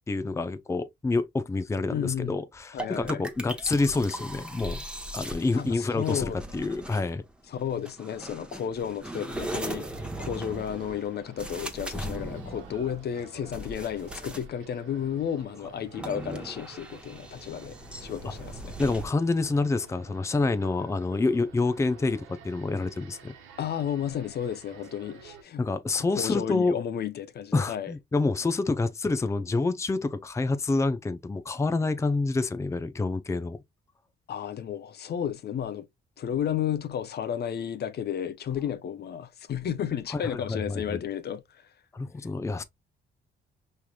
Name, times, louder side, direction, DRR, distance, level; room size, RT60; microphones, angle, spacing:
voice 1, 0.1-4.8 5.1-7.2 18.8-23.3 25.6-26.8 27.5-33.6 40.1-41.0 41.9-42.6, left 3 dB, 15° left, 0.5 m, -27 dB
voice 2, 1.9-2.4 2.7-3.2 5.6-6.4 7.5-9.9 10.2-18.8 23.6-25.6 25.9-27.9 34.3-35.8 36.2-41.7, left 9 dB, 55° left, 0.6 m, -32 dB
sound 1, 2.8-7.3 7.9-14.6 15.5-19.1, right 1 dB, 5° right, 1.0 m, -39 dB
sound 2, 9.4-25.4, right 4 dB, 90° right, 1.3 m, -51 dB
5.5 x 3.2 x 2.3 m
cardioid pair, 90°, 20 cm